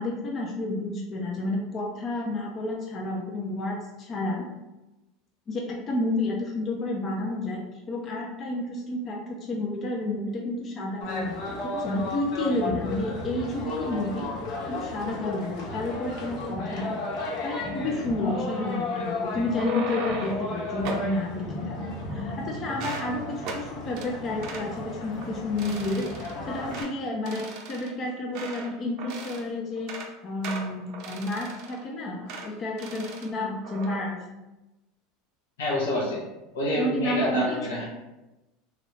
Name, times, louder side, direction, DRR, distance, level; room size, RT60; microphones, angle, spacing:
voice 1, 0.0-4.5 5.5-7.6 7.9-14.3 14.7-17.0 17.4-34.2 36.8-37.6, left 2 dB, 35° left, -1 dB, 0.5 m, -30 dB
sound 1, 11.0-26.8, left 2 dB, 60° left, 0.8 m, -34 dB
sound 2, 19.4-20.5 20.8-21.1 21.8-22.4 22.7-23.1 23.4-23.6 24.0-24.1 24.4-24.7 25.1-25.3 25.6-26.3 26.7-26.9 27.3-28.7 29.0-29.5 29.8-30.1 30.4-31.8 32.3-32.5 32.8-33.3 33.6-34.0, right 3 dB, 60° right, 0.6 m, -38 dB
voice 2, 35.6-36.2 36.5-37.9, left 1 dB, 90° left, -5 dB, 0.9 m, -27 dB
3.1 x 2.4 x 3.2 m, 1.0 s
supercardioid pair, 105°, 0 cm